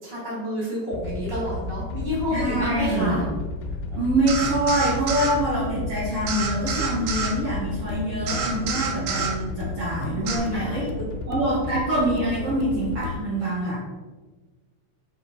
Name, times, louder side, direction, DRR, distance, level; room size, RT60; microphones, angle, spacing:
voice 1, 0.0-3.2 10.5-10.8, equal, 10° left, -8 dB, 1.0 m, -29 dB
sound 1, 0.9-13.2, left 3 dB, 80° left, 2.2 m, -33 dB
voice 2, 2.3-3.2 3.9-10.9 11.3-13.8, right 1 dB, 55° right, -8 dB, 1.7 m, -25 dB
sound 2, 4.3-5.4 6.3-7.3 8.3-9.3 10.3-10.4, right 6 dB, 80° right, 2.7 m, -28 dB
5.9 x 5.1 x 4.2 m, 1.3 s
omnidirectional pair, 4.4 m